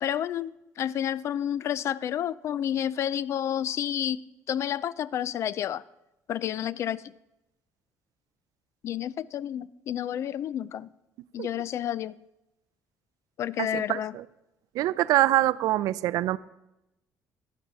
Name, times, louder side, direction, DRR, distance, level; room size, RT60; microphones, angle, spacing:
voice 1, 0.0-5.8 6.3-7.0 8.8-10.9 11.3-12.1 13.4-14.2, left 10 dB, 45° left, 20 dB, 0.3 m, -30 dB
voice 2, 13.6-14.2 14.7-16.4, right 15 dB, 70° right, 18 dB, 0.4 m, -24 dB
11.5 x 8.6 x 5.3 m, 0.91 s
cardioid pair, 145°, 6 cm